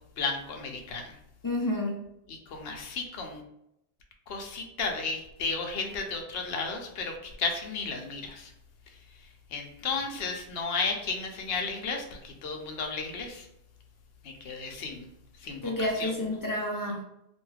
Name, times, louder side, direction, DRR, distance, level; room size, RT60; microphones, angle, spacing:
voice 1, 0.2-1.0 2.3-3.4 4.3-8.5 9.5-13.5 14.2-15.1 15.4-15.7 16.0-16.1, left 4 dB, 70° left, 2 dB, 0.8 m, -33 dB
voice 2, 1.4-2.0 15.6-17.0, left 1 dB, 35° left, -1 dB, 0.3 m, -29 dB
2.5 x 2.3 x 3.2 m, 0.81 s
omnidirectional pair, 1.1 m